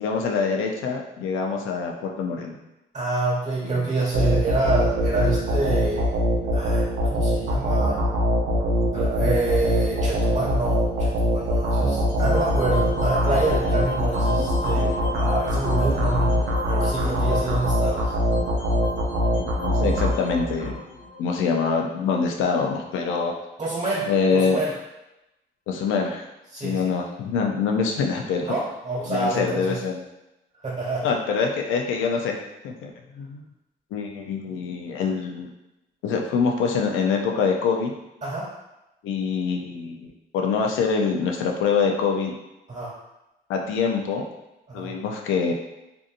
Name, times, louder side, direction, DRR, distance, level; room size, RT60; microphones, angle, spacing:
voice 1, 0.0-2.6 3.6-4.0 19.4-20.8 21.2-23.3 24.1-24.6 25.7-26.2 26.6-28.6 29.1-30.0 31.0-32.4 32.6-32.9 33.2-33.4 33.9-35.5 36.0-37.9 39.0-40.1 40.3-42.3 43.5-44.2 44.7-45.5, left 5 dB, 85° left, 2 dB, 0.4 m, -25 dB
voice 2, 2.9-6.2 6.5-8.1 8.9-18.1 23.6-24.7 26.5-26.9 28.4-29.8 30.6-31.1 38.2-38.5 42.7-42.9 44.7-44.9, right 3 dB, 35° right, -6 dB, 1.3 m, -27 dB
sound 1, 4.1-20.7, equal, 80° right, 0.5 m, -23 dB
sound 2, 12.1-22.3, left 2 dB, 45° left, 1.0 m, -34 dB
2.6 x 2.6 x 2.5 m, 0.94 s
cardioid pair, 90°, 20 cm